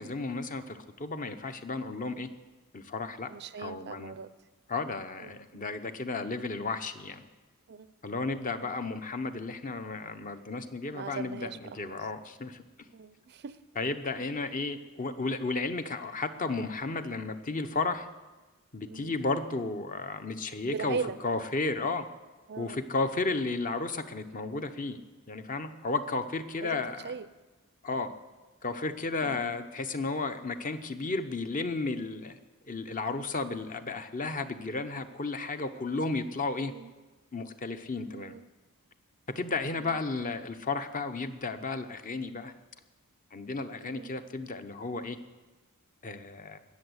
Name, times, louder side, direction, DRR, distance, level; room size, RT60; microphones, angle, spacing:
voice 1, 0.0-2.3 2.7-3.3 3.6-4.2 4.7-7.3 8.0-12.6 13.7-18.1 18.7-22.1 22.6-25.0 25.3-27.2 27.8-28.1 28.6-32.4 32.7-36.7 37.3-38.3 39.3-42.5 43.3-45.2 46.0-46.6, left 3 dB, 35° left, 9 dB, 0.9 m, -33 dB
voice 2, 3.3-4.3 5.2-5.6 7.7-8.2 10.9-12.1 12.9-13.6 18.8-19.1 20.6-21.2 22.5-22.8 26.6-27.3 29.2-29.6 36.6-36.9 38.1-38.4 39.8-40.0 43.8-44.1, right 5 dB, 50° right, 15 dB, 0.5 m, -40 dB
20.5 x 7.0 x 8.1 m, 1.2 s
head